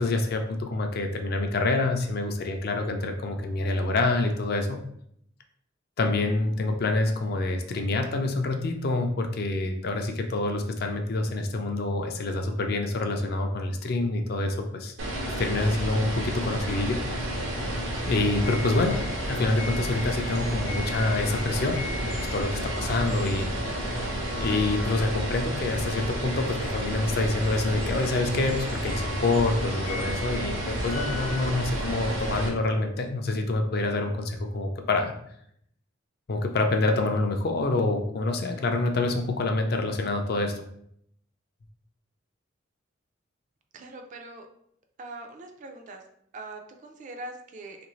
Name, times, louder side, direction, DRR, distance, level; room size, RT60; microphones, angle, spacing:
voice 1, 0.0-4.8 6.0-14.9 15.4-17.0 18.1-23.5 24.4-35.1 36.3-40.6, left 2 dB, 50° left, 4 dB, 0.4 m, -27 dB
sound 1, 15.0-32.5, right 1 dB, 75° right, 0.8 m, -31 dB
sound 2, 18.3-31.4, left 2 dB, 80° left, 0.8 m, -41 dB
voice 2, 43.7-44.5 45.0-46.0 46.3-47.9, right 2 dB, 40° right, 4 dB, 0.4 m, -42 dB
3.1 x 2.5 x 3.0 m, 0.70 s
head